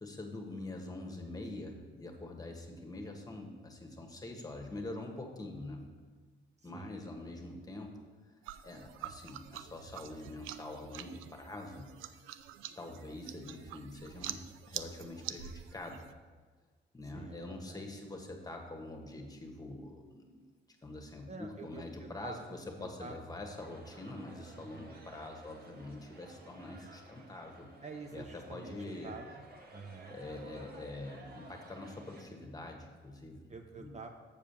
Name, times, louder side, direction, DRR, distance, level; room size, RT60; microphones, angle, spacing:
voice 1, 0.0-5.9 6.6-8.3 8.6-11.9 12.7-16.1 16.9-20.5 20.8-27.7 28.1-29.1 30.1-33.5 33.8-33.9, left 2 dB, 20° left, 2 dB, 1.4 m, -45 dB
voice 2, 6.6-7.0 17.1-17.9 21.3-23.2 24.5-24.9 27.8-29.4 29.7-30.2 33.5-34.1, right 4 dB, 35° right, 4 dB, 0.7 m, -48 dB
sound 1, 8.4-16.1, right 11 dB, 90° right, 0.4 m, -46 dB
sound 2, 23.6-32.2, right 2 dB, 50° right, 1.4 m, -55 dB
6.9 x 5.0 x 7.0 m, 1.5 s
cardioid pair, 90°, 20 cm